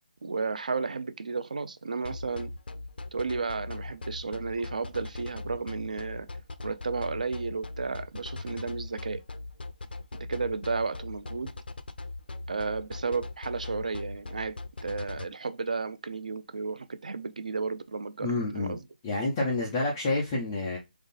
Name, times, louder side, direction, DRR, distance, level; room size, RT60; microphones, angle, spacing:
voice 1, 0.2-2.5 3.1-6.3 6.6-9.2 10.3-11.5 12.5-14.5 14.8-18.8, right 4 dB, 50° right, 0.5 m, -33 dB
sound 1, 2.0-15.3, left 2 dB, 85° left, 0.7 m, -39 dB
voice 2, 18.2-18.8 19.0-20.8, left 2 dB, 5° left, 0.3 m, -28 dB
3.7 x 3.5 x 4.0 m
hypercardioid pair, 180°, 5 cm